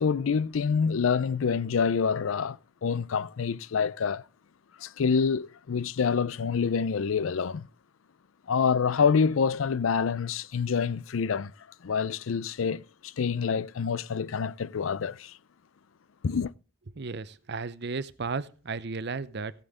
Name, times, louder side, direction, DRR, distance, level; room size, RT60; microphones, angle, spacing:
voice 1, 0.0-4.2 4.8-7.7 8.5-11.5 11.8-15.3 16.2-16.5, left 6 dB, 80° left, 0.5 m, -27 dB
voice 2, 17.0-19.5, right 4 dB, 55° right, 0.7 m, -34 dB
15.0 x 8.8 x 3.6 m
head